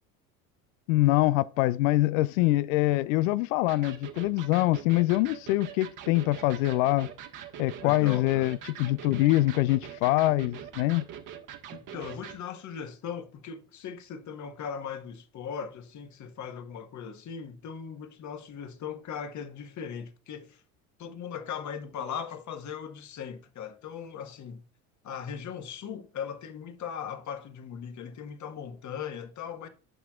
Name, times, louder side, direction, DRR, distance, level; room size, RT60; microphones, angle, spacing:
voice 1, 0.9-7.1 7.6-11.1, left 17 dB, 60° left, 0.5 m, -24 dB
Electric guitar, 3.7-12.4, right 9 dB, 45° right, 1.5 m, -43 dB
voice 2, 7.8-8.5 11.7-20.6 21.0-24.6 25.0-29.7, left 7 dB, 40° left, 1.5 m, -39 dB
15.5 x 5.8 x 2.4 m
hypercardioid pair, 75°, 44 cm